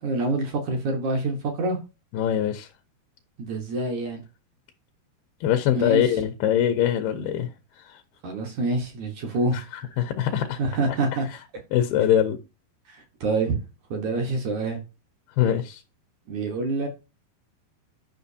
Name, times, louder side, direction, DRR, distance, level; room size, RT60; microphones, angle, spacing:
voice 1, 0.0-1.8 3.4-4.2 5.7-6.2 8.2-9.6 10.6-11.3 12.9-13.6 13.9-14.8 16.3-16.9, right 2 dB, 60° right, 2.1 m, -26 dB
voice 2, 2.1-2.7 5.4-7.5 7.8-8.0 9.5-9.6 10.0-10.6 11.7-12.4 15.4-15.8, left 10 dB, 80° left, 2.5 m, -23 dB
10.5 x 5.7 x 2.8 m
omnidirectional pair, 4.8 m